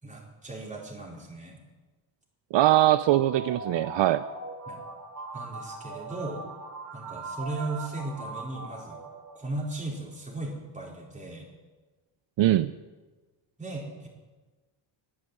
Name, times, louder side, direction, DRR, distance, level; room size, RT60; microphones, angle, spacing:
voice 1, 0.0-1.6 4.7-4.8 5.3-6.4 6.9-9.0 9.3-11.5 13.6-14.1, right 2 dB, 15° right, -2 dB, 4.4 m, -37 dB
voice 2, 2.5-4.2 12.4-12.7, right 14 dB, 70° right, 13 dB, 0.6 m, -22 dB
sound 1, 2.9-9.7, right 3 dB, 35° right, 2.7 m, -40 dB
10.5 x 10.0 x 9.5 m, 1.2 s
cardioid pair, 85°, 46 cm